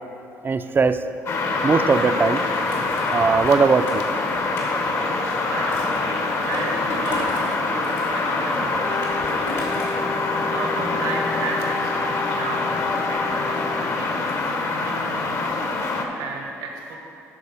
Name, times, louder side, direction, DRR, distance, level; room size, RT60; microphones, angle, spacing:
voice 1, 0.4-1.0 1.6-2.4 3.1-4.0, right 4 dB, 30° right, 10 dB, 0.4 m, -19 dB
sound 1, 1.3-16.1, left 3 dB, 50° left, 1.0 m, -25 dB
Skateboard, 2.4-5.1 5.7-7.6 7.8-10.0, left 2 dB, 80° left, 2.0 m, -35 dB
voice 2, 5.4-9.8 10.5-12.7 13.0-14.4 14.8-15.4 15.9-17.0, right 4 dB, 80° right, 0 dB, 1.3 m, -34 dB
Wind instrument woodwind instrument, 8.8-14.0, left 4 dB, 35° left, 0.7 m, -32 dB
11.5 x 4.1 x 5.6 m, 2.9 s
supercardioid pair, 65°, 7 cm